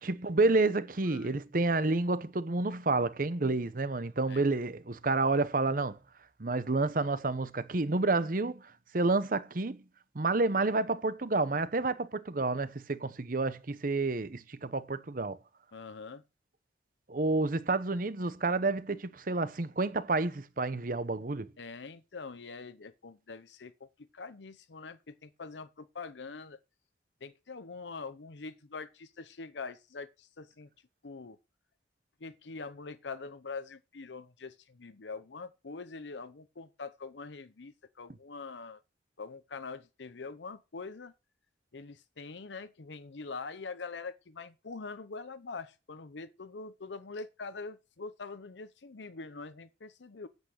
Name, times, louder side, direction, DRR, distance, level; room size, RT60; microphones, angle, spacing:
voice 1, 0.0-6.0 6.4-9.8 10.1-15.4 17.1-21.5, right 3 dB, 50° right, 0.8 m, -29 dB
voice 2, 15.7-16.2 21.6-23.9 24.1-26.6 27.2-30.7 31.0-31.4 32.2-38.8 39.2-41.1 41.7-50.3, left 4 dB, 85° left, 0.7 m, -44 dB
9.4 x 8.0 x 6.4 m
head